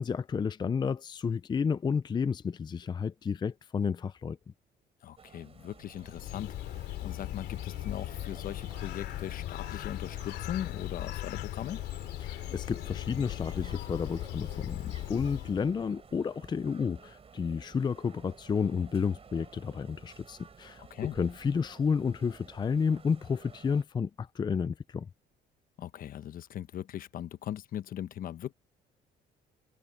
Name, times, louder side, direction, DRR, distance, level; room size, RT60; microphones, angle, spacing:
voice 1, 0.0-4.4 12.2-20.8 21.1-25.1, left 6 dB, 25° left, 0.5 m, -31 dB
voice 2, 5.0-11.8 20.8-21.2 25.8-28.5, left 11 dB, 55° left, 1.1 m, -39 dB
sound 1, 5.2-23.8, right 6 dB, 35° right, 7.0 m, -54 dB
Bird, 5.8-15.8, left 14 dB, 80° left, 2.9 m, -38 dB
cardioid pair, 110°, 17 cm